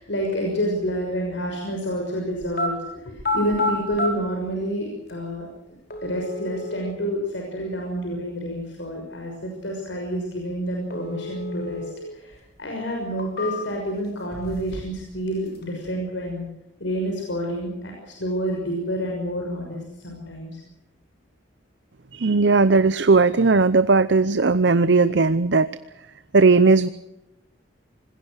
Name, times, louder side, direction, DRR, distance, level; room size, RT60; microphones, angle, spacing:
voice 1, 0.0-2.8 3.0-5.5 6.0-11.8 12.1-12.3 12.6-16.5 16.8-19.8 20.0-20.6, equal, 85° left, 1 dB, 6.3 m, -28 dB
sound 1, 2.4-2.7 3.1-4.1 5.1-5.2 5.9-6.9 10.9-11.9 12.3-12.4 13.0-13.9 14.3-15.0 15.3-15.9, left 2 dB, 55° left, 5.2 m, -30 dB
voice 2, 22.1-25.7 26.3-26.9, right 3 dB, 70° right, 13 dB, 0.8 m, -17 dB
26.0 x 20.5 x 6.4 m, 0.90 s
head